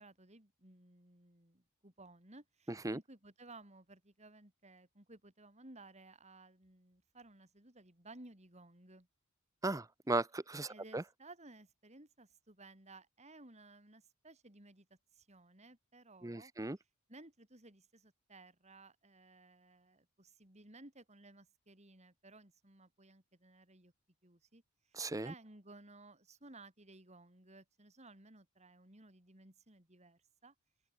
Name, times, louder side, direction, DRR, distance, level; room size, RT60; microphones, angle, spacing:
voice 1, 0.0-9.1 10.7-14.9 15.1-16.5 17.1-23.9 24.2-30.5, right 2 dB, 30° right, 3.8 m, -58 dB
voice 2, 9.6-11.0 16.2-16.8 24.9-25.3, right 2 dB, 15° right, 0.7 m, -37 dB
head